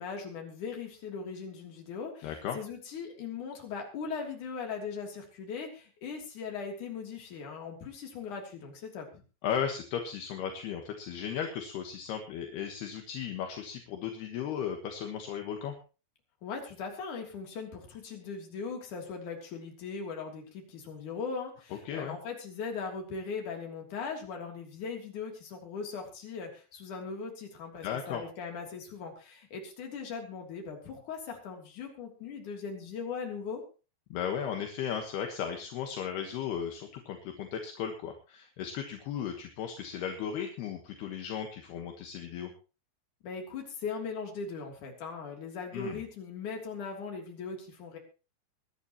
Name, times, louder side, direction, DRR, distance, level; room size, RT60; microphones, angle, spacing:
voice 1, 0.0-9.2 16.4-33.6 43.2-48.0, left 5 dB, 45° left, 1 dB, 4.4 m, -39 dB
voice 2, 2.2-2.6 9.4-15.8 21.9-22.2 27.8-28.2 34.1-42.5 45.7-46.0, left 8 dB, 70° left, 4 dB, 3.3 m, -36 dB
23.0 x 11.5 x 3.1 m, 0.34 s
omnidirectional pair, 5.1 m